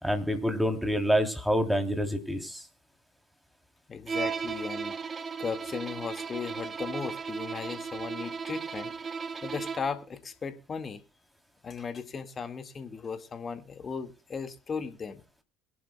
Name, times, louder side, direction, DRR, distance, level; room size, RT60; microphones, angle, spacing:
voice 1, 0.0-2.6, equal, ahead, 4 dB, 3.2 m, -27 dB
voice 2, 3.9-5.0 5.4-8.9 9.4-11.0 11.6-15.2, left 5 dB, 35° left, 8 dB, 1.9 m, -36 dB
Bowed string instrument, 4.1-10.0, right 5 dB, 35° right, 1.2 m, -36 dB
22.5 x 11.0 x 2.3 m, 0.33 s
hypercardioid pair, 60°, 0 cm